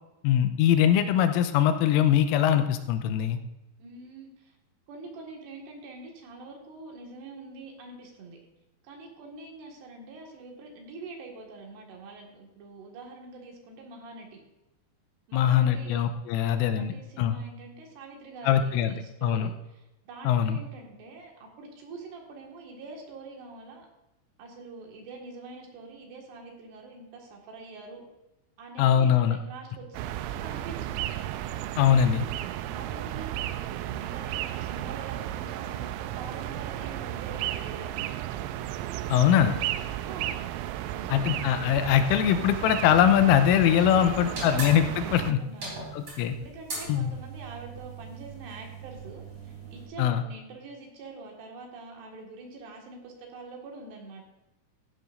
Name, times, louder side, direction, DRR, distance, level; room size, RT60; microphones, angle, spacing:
voice 1, 0.2-3.4 15.3-17.4 18.4-19.5 20.2-20.6 28.8-29.4 31.8-32.2 39.1-39.5 41.1-45.4 45.9-46.3 46.9-47.1 50.0-50.2, left 10 dB, 90° left, 8 dB, 3.3 m, -22 dB
voice 2, 3.8-4.6 4.9-8.4 8.8-14.4 15.3-16.0 16.4-23.9 24.4-28.0 28.6-31.1 31.9-38.1 39.3-40.5 40.9-41.4 43.9-44.7 45.0-45.9 46.2-54.2, right 3 dB, 60° right, 0 dB, 3.6 m, -45 dB
sound 1, 29.9-45.3, right 13 dB, 90° right, 3.3 m, -34 dB
sound 2, 44.3-49.9, right 3 dB, 30° right, 4.1 m, -39 dB
15.5 x 11.0 x 2.6 m, 0.95 s
omnidirectional pair, 5.8 m